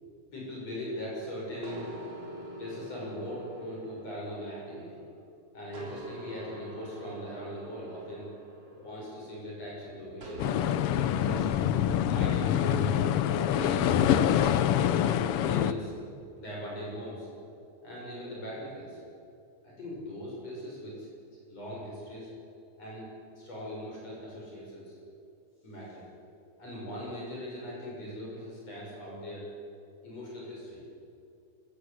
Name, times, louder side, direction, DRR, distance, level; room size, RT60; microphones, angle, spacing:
voice 1, 0.3-1.9 2.6-5.0 5.5-8.3 8.7-10.5 10.9-11.6 12.1-12.9 13.1-14.7 15.4-15.9 16.4-17.3 17.8-19.0 19.6-21.1 21.5-22.3 22.8-23.1 23.3-25.0 25.6-26.1 26.6-29.5 30.0-30.8, equal, 50° left, -4 dB, 7.8 m, -40 dB
sound 1, 1.6-5.2 5.7-9.5 10.2-12.9, right 1 dB, 50° right, 4.1 m, -46 dB
sound 2, 10.4-15.7, left 10 dB, 85° left, 1.3 m, -25 dB
27.0 x 16.0 x 8.2 m, 2.5 s
omnidirectional pair, 3.6 m